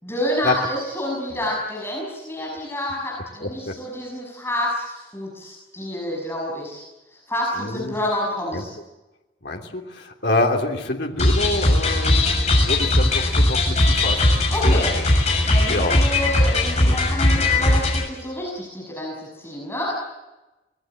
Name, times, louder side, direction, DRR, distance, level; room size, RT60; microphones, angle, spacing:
voice 1, 0.0-6.8 7.1-8.7 14.5-14.9 15.4-19.9, left 1 dB, 15° left, -3 dB, 6.2 m, -28 dB
voice 2, 3.4-3.7 7.6-7.9 8.5-8.6 9.4-14.9 15.7-16.0 16.8-17.0, left 2 dB, 75° left, 1 dB, 3.1 m, -26 dB
sound 1, 11.2-18.0, left 1 dB, 40° left, 7.0 m, -19 dB
25.0 x 20.5 x 7.9 m, 1.1 s
head